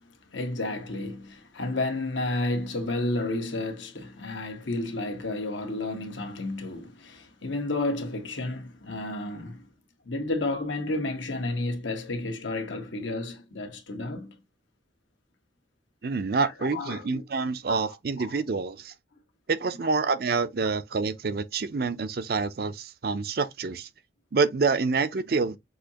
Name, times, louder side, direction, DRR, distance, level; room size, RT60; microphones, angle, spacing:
voice 1, 0.0-9.7 10.1-14.3 16.4-17.2 17.7-18.4, left 2 dB, 80° left, 1.4 m, -32 dB
voice 2, 16.0-18.9 19.5-23.9 24.3-25.6, right 4 dB, 50° right, 0.5 m, -27 dB
6.4 x 2.8 x 2.8 m
head